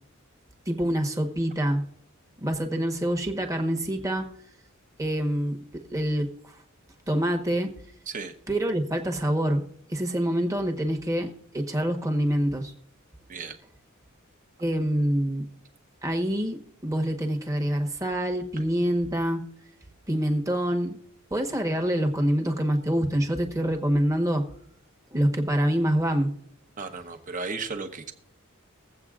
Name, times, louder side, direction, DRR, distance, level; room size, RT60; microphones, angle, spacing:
voice 1, 0.7-1.8 2.4-4.2 5.0-6.5 7.1-7.7 8.5-9.6 9.9-12.7 14.6-15.5 16.0-19.4 20.1-21.0 21.3-24.4 25.1-26.3, right 1 dB, 15° right, 3 dB, 1.1 m, -26 dB
voice 2, 8.1-8.4 13.3-13.6 26.8-28.1, right 4 dB, 40° right, 6 dB, 1.0 m, -34 dB
21.0 x 8.0 x 2.4 m, 0.67 s
head